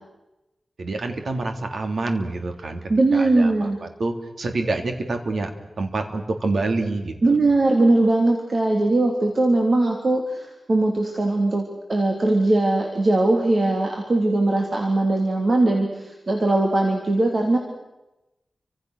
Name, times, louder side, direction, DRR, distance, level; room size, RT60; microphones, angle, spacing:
voice 1, 0.8-2.8 3.1-5.5 5.8-7.4, right 2 dB, 70° right, 5 dB, 3.2 m, -27 dB
voice 2, 2.9-3.8 7.2-11.6 11.9-17.6, right 2 dB, 45° right, 1 dB, 3.5 m, -20 dB
30.0 x 25.5 x 6.6 m, 0.99 s
wide cardioid pair, 130°, 0 cm